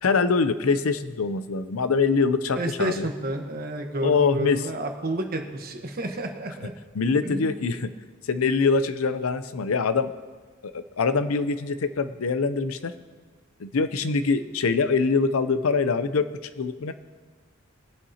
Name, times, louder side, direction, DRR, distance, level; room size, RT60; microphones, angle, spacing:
voice 1, 0.0-3.1 4.0-4.7 6.6-6.7 6.9-7.9 8.3-10.1 10.6-12.9 13.6-16.3 16.6-16.9, left 4 dB, 90° left, 11 dB, 0.6 m, -24 dB
voice 2, 2.6-6.7 7.2-7.5, right 1 dB, 45° right, 4 dB, 1.2 m, -30 dB
22.0 x 8.2 x 2.8 m, 1.4 s
head